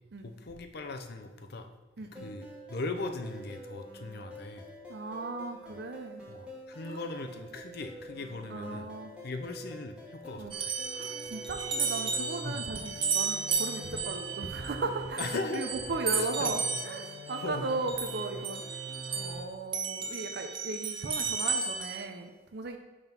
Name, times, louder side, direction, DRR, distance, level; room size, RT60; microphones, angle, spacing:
voice 1, 0.2-1.7 2.1-4.7 6.3-8.9 9.2-10.7 12.4-12.7 15.2-15.7 16.1-16.5 17.4-17.7, left 3 dB, 60° left, 6 dB, 0.6 m, -39 dB
sound 1, 2.1-19.4, equal, 5° right, 1.3 m, -45 dB
voice 2, 4.9-6.2 6.9-7.0 8.5-9.1 10.4-10.5 10.9-15.2 15.5-18.6 19.1-22.8, right 3 dB, 60° right, 5 dB, 0.5 m, -37 dB
sound 2, 10.5-19.4 19.7-22.0, right 5 dB, 25° right, 0.7 m, -34 dB
5.4 x 3.7 x 5.9 m, 1.3 s
head